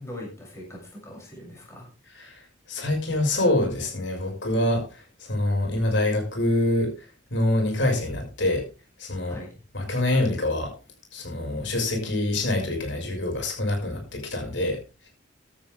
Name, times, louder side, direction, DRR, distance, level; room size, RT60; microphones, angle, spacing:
voice 1, 0.0-1.9 9.3-9.5, left 1 dB, 15° left, -2 dB, 7.2 m, -41 dB
voice 2, 2.1-8.6 9.0-9.4 9.7-10.7 11.1-14.8, left 1 dB, 75° left, 2 dB, 5.9 m, -26 dB
15.0 x 12.0 x 3.6 m, 0.32 s
head